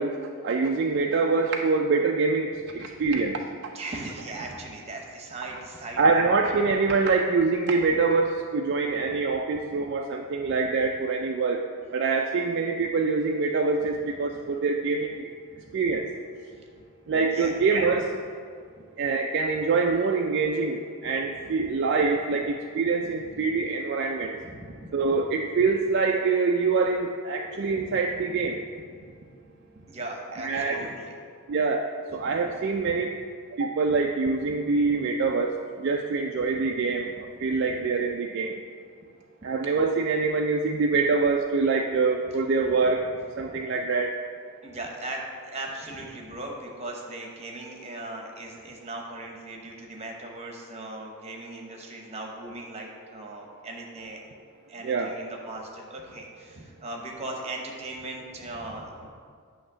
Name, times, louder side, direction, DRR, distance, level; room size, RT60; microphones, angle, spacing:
voice 1, 0.0-3.4 6.0-11.6 11.9-15.3 15.7-16.1 17.1-18.1 19.0-24.4 24.9-28.6 30.4-30.8 31.5-33.2 33.6-35.5 35.8-37.1 37.4-38.5 39.4-43.0 43.4-44.1 54.8-55.1, right 4 dB, 50° right, 2 dB, 0.3 m, -25 dB
voice 2, 3.7-6.5 9.1-9.2 9.7-10.0 10.4-10.6 13.8-13.9 14.3-14.4 15.5-15.7 16.5-16.8 17.3-17.5 17.8-17.9 21.6-21.7 23.0-23.4 24.4-25.2 27.6-31.2 32.1-32.5 32.8-33.0 33.9-34.0 34.4-35.0 36.5-36.7 37.6-37.7 42.8-42.9 43.4-43.6 44.6-54.2 54.7-59.1, right 2 dB, 30° right, 0 dB, 0.9 m, -39 dB
8.6 x 2.9 x 6.1 m, 2.1 s
head